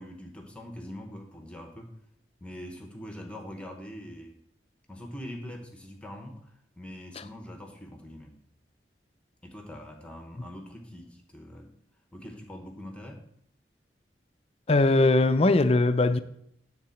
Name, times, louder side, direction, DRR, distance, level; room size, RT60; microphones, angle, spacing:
voice 1, 0.0-2.0 2.4-4.4 4.9-8.3 9.4-11.7 12.1-13.2, left 1 dB, 5° left, 1.0 m, -43 dB
voice 2, 14.7-16.2, left 2 dB, 35° left, 0.5 m, -20 dB
10.5 x 4.0 x 7.1 m
head